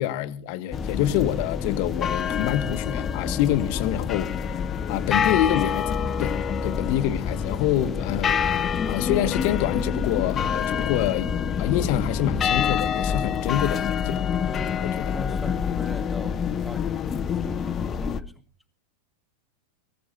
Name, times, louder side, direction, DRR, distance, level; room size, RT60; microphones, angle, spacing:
voice 1, 0.0-4.3 4.9-6.3 6.6-8.5 8.9-11.3 11.6-14.2 14.5-15.1, left 12 dB, 45° left, 1.1 m, -26 dB
sound 1, 0.7-18.2, left 7 dB, 25° left, 0.7 m, -26 dB
voice 2, 15.1-18.4, left 1 dB, ahead, 1.7 m, -40 dB
24.0 x 16.0 x 2.7 m
figure-of-eight pair, 90°, 0 cm